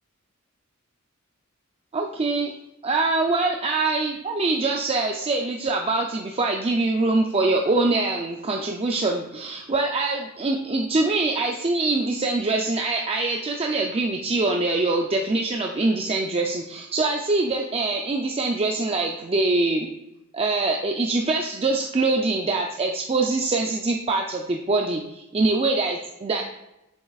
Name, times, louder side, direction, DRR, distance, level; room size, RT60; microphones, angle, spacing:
voice 1, 1.9-2.5 2.8-19.9 20.3-26.4, right 3 dB, 30° right, 2 dB, 0.5 m, -24 dB
8.1 x 7.2 x 2.4 m, 0.90 s
head